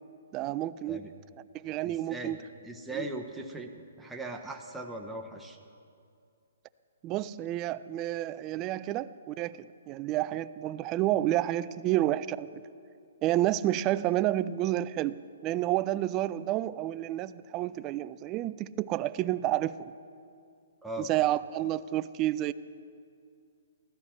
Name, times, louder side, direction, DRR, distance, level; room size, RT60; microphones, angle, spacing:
voice 1, 0.3-1.0 1.5-2.4 2.9-3.1 7.0-12.6 13.2-19.9 21.0-22.5, right 14 dB, 25° right, 16 dB, 0.3 m, -30 dB
voice 2, 1.8-2.4 2.6-5.6 20.8-21.1, right 2 dB, 5° right, 1 dB, 0.8 m, -39 dB
16.0 x 13.5 x 4.3 m, 2.4 s
hypercardioid pair, 150°, 0 cm